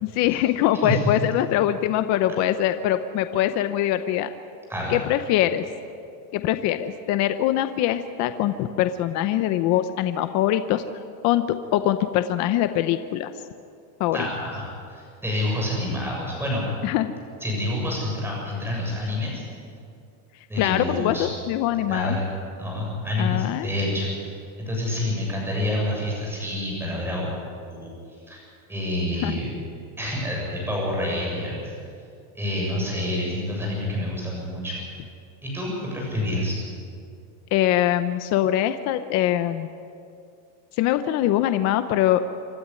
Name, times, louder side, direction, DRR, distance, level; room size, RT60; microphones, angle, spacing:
voice 1, 0.0-4.3 4.9-5.6 6.3-10.8 11.2-13.3 14.0-14.3 16.8-17.1 20.6-22.2 23.2-23.7 29.2-29.3 37.5-39.7 40.8-42.2, left 12 dB, 40° left, 10 dB, 0.8 m, -23 dB
voice 2, 14.1-16.7 17.4-19.4 20.5-21.3 21.9-22.2 22.6-27.3 27.7-28.4 28.7-29.5 30.0-31.7 32.4-34.8 35.4-36.6, left 1 dB, 5° right, -3 dB, 7.0 m, -28 dB
26.0 x 13.0 x 9.9 m, 2.4 s
cardioid pair, 165°, 42 cm